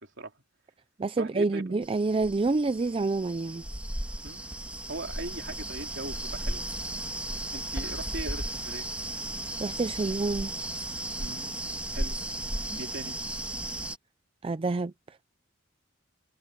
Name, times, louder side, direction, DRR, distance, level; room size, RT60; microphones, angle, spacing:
voice 1, 0.0-0.3 1.2-1.6 4.2-4.4 4.9-6.6 7.5-8.9 11.2-11.6 11.9-12.2 12.8-13.2, right 2 dB, 60° right, 3.6 m, -39 dB
voice 2, 1.0-3.6 9.6-10.5 14.4-15.2, right 3 dB, 30° right, 0.4 m, -28 dB
sound 1, 1.8-14.0, right 1 dB, 5° right, 1.8 m, -35 dB
head